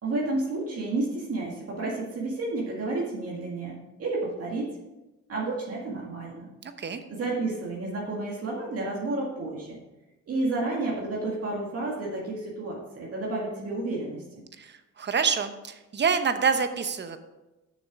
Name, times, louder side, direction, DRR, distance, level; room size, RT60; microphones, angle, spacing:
voice 1, 0.0-4.8 5.3-6.5 7.1-9.8 10.3-14.2, right 2 dB, 50° right, -3 dB, 1.9 m, -31 dB
voice 2, 6.6-7.0 14.6-17.2, right 6 dB, 35° right, 9 dB, 0.9 m, -27 dB
7.3 x 6.1 x 5.1 m, 1.0 s
cardioid pair, 90°, 30 cm